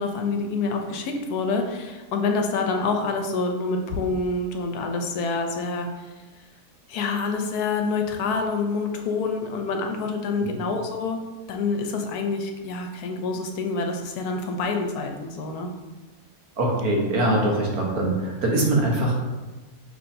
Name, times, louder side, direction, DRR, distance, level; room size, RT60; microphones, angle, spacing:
voice 1, 0.0-6.1 6.9-11.2 11.5-15.7, left 4 dB, 80° left, 4 dB, 1.1 m, -27 dB
voice 2, 16.6-19.2, right 1 dB, 70° right, -1 dB, 1.4 m, -23 dB
6.1 x 3.1 x 2.6 m, 1.2 s
omnidirectional pair, 1.6 m